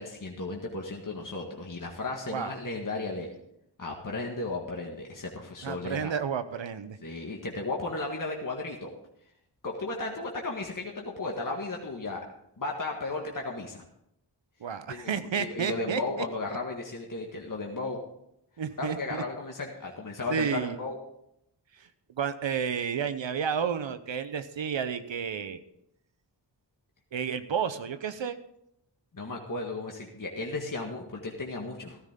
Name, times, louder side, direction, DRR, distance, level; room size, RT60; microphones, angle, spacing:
voice 1, 0.0-3.3 3.8-6.1 7.0-8.9 9.6-12.2 12.6-13.8 14.9-18.0 18.8-21.0 29.1-32.0, left 3 dB, 45° left, 0 dB, 1.8 m, -35 dB
voice 2, 2.3-2.6 5.6-7.0 14.6-16.2 18.6-19.2 20.3-20.8 21.7-21.9 22.2-25.6 27.1-28.4, right 7 dB, 90° right, 11 dB, 0.9 m, -31 dB
14.5 x 12.5 x 3.8 m, 0.77 s
cardioid pair, 50°, 44 cm